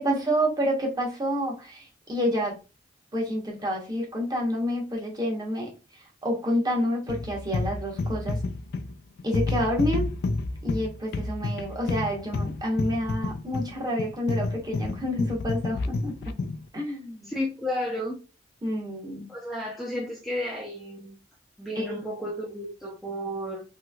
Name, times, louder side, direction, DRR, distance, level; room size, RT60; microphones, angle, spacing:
voice 1, 0.0-2.5 3.1-5.7 6.2-8.4 9.2-10.1 10.6-16.1 16.7-17.3 18.6-19.3 21.8-21.9, equal, 20° right, -1 dB, 0.9 m, -28 dB
sound 1, 7.1-16.7, left 3 dB, 55° left, 0.3 m, -30 dB
voice 2, 17.2-18.2 19.3-21.2 21.6-23.6, left 1 dB, ahead, -4 dB, 0.5 m, -32 dB
3.0 x 3.0 x 2.2 m, 0.32 s
head